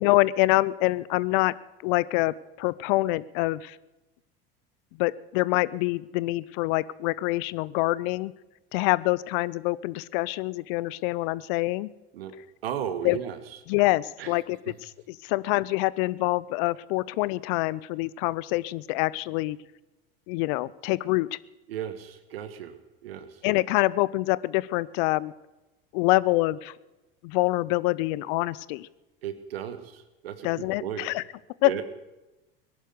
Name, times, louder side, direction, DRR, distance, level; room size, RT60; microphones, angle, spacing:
voice 1, 0.0-1.5 1.8-3.8 5.0-8.3 8.7-11.9 13.0-13.2 13.7-19.6 20.3-21.4 23.4-25.3 25.9-26.7 27.2-28.9 30.4-31.2 31.6-31.7, left 20 dB, 60° left, 20 dB, 0.6 m, -26 dB
voice 2, 12.6-13.4 14.2-14.3 21.7-22.7 23.0-23.4 29.2-31.1 31.6-31.8, right 10 dB, 80° right, 11 dB, 1.4 m, -35 dB
18.5 x 11.0 x 6.8 m, 1.0 s
hypercardioid pair, 80°, 29 cm